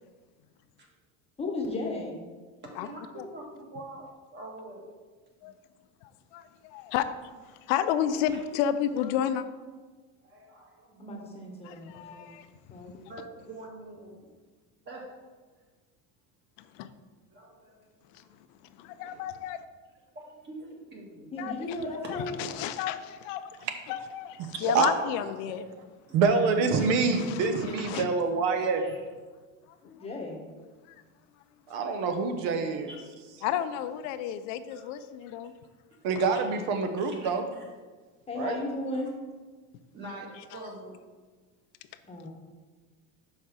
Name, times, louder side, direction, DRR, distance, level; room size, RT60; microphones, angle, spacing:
voice 1, 1.4-2.2 11.0-12.3 12.7-13.1 21.3-22.4 29.8-30.4 38.3-39.1 42.1-42.3, left 2 dB, 15° left, 0 dB, 1.0 m, -35 dB
voice 2, 2.6-4.9 5.4-5.5 8.3-8.4 10.2-11.1 13.1-14.2 14.8-15.2 17.3-17.9 18.1-18.3 19.0-19.2 20.1-21.3 22.0-22.1 26.1-26.2 27.8-28.1 28.7-29.0 32.9-33.0 34.7-34.9 36.3-36.4 37.0-37.7 38.9-39.0 39.9-41.0, right 2 dB, 30° right, -1 dB, 1.7 m, -45 dB
voice 3, 6.3-7.1 7.7-9.4 11.6-12.5 16.8-16.9 18.8-19.6 21.4-21.8 22.4-23.5 23.9-25.6 26.8-26.9 27.1-28.1 33.4-35.5, left 10 dB, 80° left, 11 dB, 0.6 m, -31 dB
voice 4, 24.6-24.9 26.1-28.8 31.7-32.9 36.0-37.4 38.4-38.6, right 4 dB, 65° right, 6 dB, 1.0 m, -26 dB
5.4 x 4.8 x 6.2 m, 1.4 s
cardioid pair, 160°, 37 cm